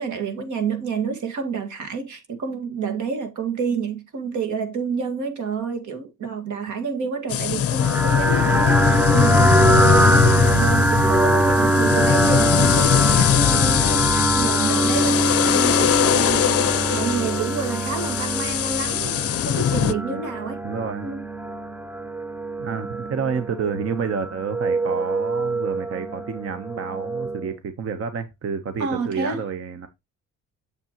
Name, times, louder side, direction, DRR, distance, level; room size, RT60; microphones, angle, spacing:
voice 1, 0.0-20.6 21.0-21.2 28.8-29.4, right 5 dB, 75° right, 1.9 m, -29 dB
sound 1, 7.3-19.9, left 10 dB, 50° left, 0.5 m, -21 dB
sound 2, 7.8-27.5, right 2 dB, 5° right, 0.4 m, -23 dB
voice 2, 19.7-20.2 20.6-21.1 22.6-29.9, right 6 dB, 50° right, 0.9 m, -29 dB
7.2 x 6.9 x 2.9 m
cardioid pair, 90°, 30 cm